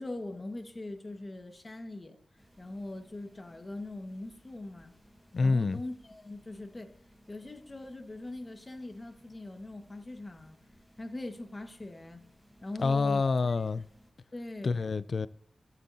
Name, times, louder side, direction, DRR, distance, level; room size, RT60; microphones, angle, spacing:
voice 1, 0.0-2.2 2.6-4.9 5.4-6.9 7.3-10.6 11.0-12.3 12.6-13.2 14.3-14.8, left 2 dB, 30° left, 1.5 m, -41 dB
sound 1, 2.4-14.1, equal, 5° left, 1.1 m, -62 dB
voice 2, 5.3-5.8 12.8-13.8 14.6-15.3, left 4 dB, 60° left, 0.4 m, -27 dB
19.0 x 7.4 x 2.8 m
cardioid pair, 70°, 0 cm